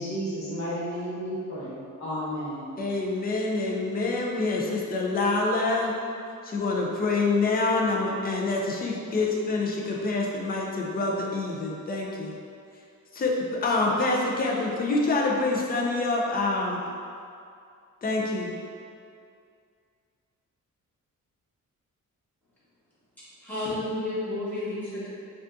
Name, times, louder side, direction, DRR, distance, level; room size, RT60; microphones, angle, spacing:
voice 1, 0.0-2.7, equal, 55° left, -8 dB, 1.2 m, -32 dB
voice 2, 2.8-5.9 6.4-12.3 13.1-16.8 18.0-18.5, left 3 dB, 30° left, -2 dB, 0.5 m, -26 dB
voice 3, 23.4-25.1, left 1 dB, 5° left, -13 dB, 1.4 m, -31 dB
5.0 x 2.4 x 2.6 m, 2.3 s
wide cardioid pair, 140°, 32 cm